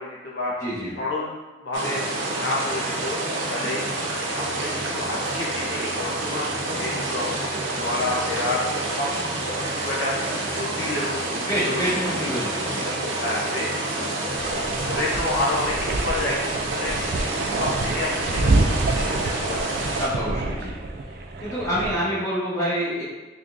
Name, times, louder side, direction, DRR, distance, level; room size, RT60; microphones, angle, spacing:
voice 1, 0.0-0.5 1.0-3.8 4.3-10.1 10.5-11.9 12.5-12.8 13.2-14.1 14.8-19.8 21.7-21.9, left 2 dB, 65° left, -4 dB, 0.6 m, -30 dB
sound 1, 1.7-20.1, right 2 dB, 80° right, 0.7 m, -28 dB
sound 2, 4.3-22.2, equal, 20° right, 0.7 m, -45 dB
voice 2, 11.5-12.9 20.0-20.8 21.4-23.0, equal, 15° left, -9 dB, 1.1 m, -26 dB
sound 3, 14.4-21.9, right 2 dB, 50° right, 0.3 m, -27 dB
3.7 x 3.4 x 2.5 m, 1.2 s
head